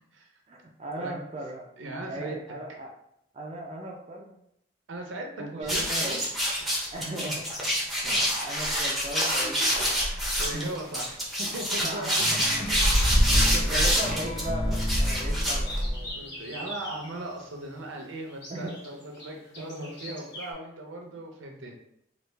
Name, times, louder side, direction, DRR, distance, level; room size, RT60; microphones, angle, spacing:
voice 1, 0.5-1.7 2.1-2.9 3.3-4.4 5.4-6.3 6.9-7.7 8.0-9.9 10.5-10.7 11.8-12.6 13.2-16.2 18.5-18.8 19.6-20.1, right 1 dB, 30° right, 0 dB, 0.4 m, -38 dB
voice 2, 1.8-2.4 4.9-6.2 7.1-7.2 8.0-8.4 10.0-12.1 13.1-13.9 16.1-21.7, right 1 dB, 80° right, 2 dB, 0.6 m, -39 dB
sound 1, 5.6-16.1, equal, ahead, 0.7 m, -25 dB
sound 2, 12.1-17.1, left 1 dB, 75° left, 1.0 m, -38 dB
sound 3, 15.4-17.5 18.3-20.5, left 1 dB, 60° left, 1.3 m, -42 dB
3.2 x 2.3 x 3.2 m, 0.76 s
head